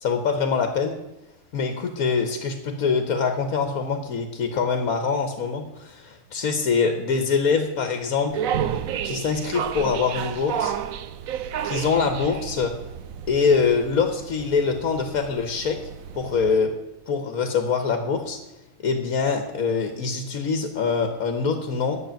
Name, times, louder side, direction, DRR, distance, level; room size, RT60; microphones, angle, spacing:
voice 1, 0.0-0.9 1.5-8.4 9.0-10.8 11.6-12.7 13.3-15.8 16.1-16.7 17.1-18.4 18.8-22.0, left 5 dB, 80° left, 6 dB, 1.5 m, -24 dB
sound 1, 8.3-16.6, right 8 dB, 75° right, 1.1 m, -31 dB
9.9 x 6.7 x 9.0 m, 0.97 s
omnidirectional pair, 1.5 m